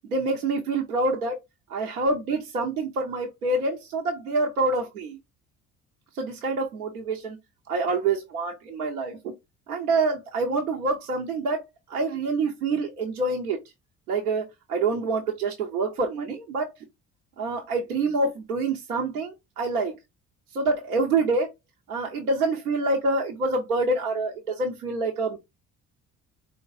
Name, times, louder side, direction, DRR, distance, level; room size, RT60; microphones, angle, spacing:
voice 1, 0.1-1.4 1.7-5.2 6.1-7.4 7.7-9.2 9.7-13.6 14.1-16.7 17.4-20.0 20.5-21.5 21.9-25.4, right 3 dB, 90° right, 0.6 m, -26 dB
4.3 x 3.1 x 2.3 m
hypercardioid pair, 55°, 43 cm